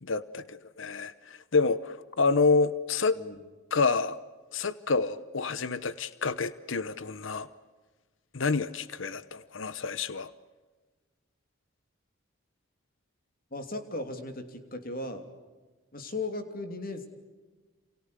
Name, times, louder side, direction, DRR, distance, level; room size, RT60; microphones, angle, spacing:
voice 1, 0.0-3.2 3.7-4.2 4.5-7.5 8.3-10.3, left 4 dB, 70° left, 15 dB, 0.9 m, -28 dB
voice 2, 13.5-15.2 15.9-17.1, left 2 dB, 45° left, 7 dB, 3.0 m, -36 dB
29.0 x 28.0 x 6.8 m, 1.3 s
head